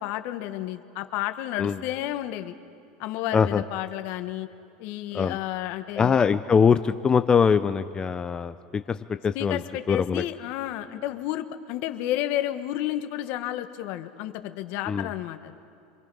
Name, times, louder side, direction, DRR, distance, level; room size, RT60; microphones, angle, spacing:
voice 1, 0.0-2.5 3.0-4.5 4.8-6.2 9.3-15.6, left 13 dB, 60° left, 8 dB, 1.3 m, -31 dB
voice 2, 6.0-9.6 9.9-10.2 14.9-15.1, left 6 dB, 20° left, 10 dB, 0.6 m, -22 dB
28.0 x 23.5 x 5.5 m, 2.5 s
supercardioid pair, 120°, 4 cm